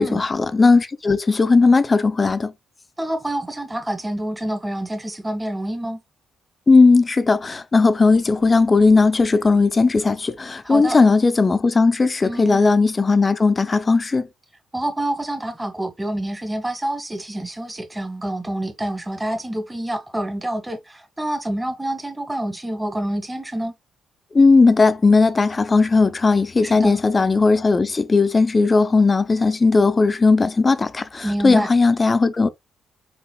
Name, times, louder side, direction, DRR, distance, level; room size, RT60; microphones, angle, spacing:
voice 1, 0.0-2.5 6.7-14.3 24.3-32.5, left 3 dB, 30° left, 0.5 m, -17 dB
voice 2, 3.0-6.0 10.6-11.0 12.2-12.6 14.7-23.8 26.6-27.0 31.2-31.7, right 1 dB, 15° right, 1.5 m, -27 dB
5.6 x 4.3 x 2.2 m
cardioid pair, 90°, 0 cm